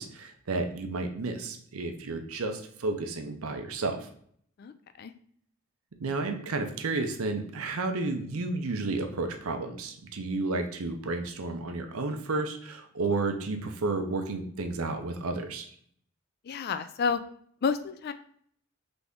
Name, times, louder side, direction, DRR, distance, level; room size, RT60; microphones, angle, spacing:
voice 1, 0.0-4.1 6.0-15.7, right 3 dB, 85° right, 6 dB, 0.7 m, -32 dB
voice 2, 4.6-5.1 16.4-17.2 17.6-18.1, left 5 dB, 45° left, 11 dB, 0.3 m, -30 dB
4.0 x 3.4 x 3.6 m, 0.62 s
head